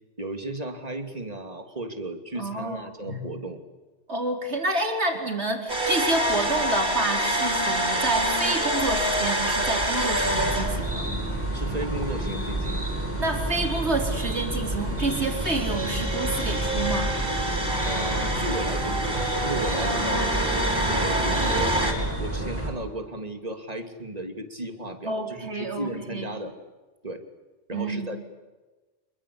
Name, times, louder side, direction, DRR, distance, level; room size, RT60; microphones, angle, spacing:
voice 1, 0.2-3.6 7.6-7.7 11.5-12.8 17.9-21.8 22.2-26.5 27.0-27.2 27.7-28.2, right 1 dB, 35° right, 6 dB, 2.9 m, -35 dB
voice 2, 2.4-3.2 4.1-11.1 13.2-17.1 20.0-20.5 25.0-26.4 27.7-28.1, right 2 dB, 85° right, 2 dB, 4.8 m, -29 dB
sound 1, 5.7-21.9, right 1 dB, 55° right, 5.8 m, -27 dB
sound 2, 10.2-22.7, right 1 dB, 10° right, 7.4 m, -30 dB
27.5 x 23.0 x 8.5 m, 1.2 s
omnidirectional pair, 1.1 m